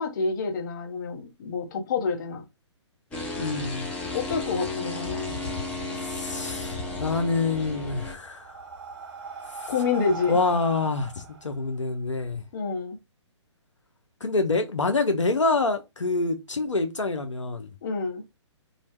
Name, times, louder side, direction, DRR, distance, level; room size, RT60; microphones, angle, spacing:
voice 1, 0.0-2.4 4.1-5.2 9.7-10.4 12.5-13.0 17.8-18.2, left 5 dB, 40° left, 0.8 m, -28 dB
sound 1, 3.1-8.1, left 2 dB, 10° left, 0.5 m, -33 dB
voice 2, 3.4-3.9 6.0-8.6 9.5-9.7 10.3-12.4 14.2-17.7, left 3 dB, 85° left, 0.5 m, -26 dB
Breathing, 7.8-12.4, right 4 dB, 55° right, 0.8 m, -40 dB
2.6 x 2.1 x 3.0 m
figure-of-eight pair, 130°, 15 cm